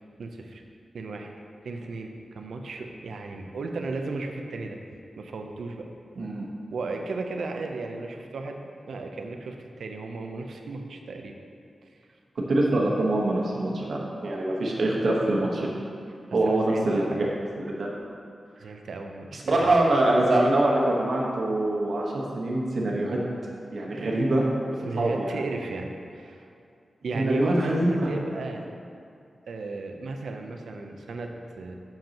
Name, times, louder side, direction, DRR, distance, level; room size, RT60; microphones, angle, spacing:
voice 1, 0.2-0.6 0.9-1.3 1.6-4.8 5.2-5.9 6.7-11.3 11.8-11.9 16.4-17.2 18.6-19.7 24.9-26.5 27.0-28.7 29.5-31.8, right 3 dB, 90° right, 3 dB, 0.6 m, -35 dB
voice 2, 6.2-6.5 12.4-15.7 16.3-17.3 17.6-17.9 19.3-23.2 23.7-24.5 24.9-25.2 27.1-28.1, right 1 dB, 70° right, -3 dB, 1.2 m, -24 dB
7.8 x 7.2 x 2.9 m, 2.5 s
wide cardioid pair, 105°, 0 cm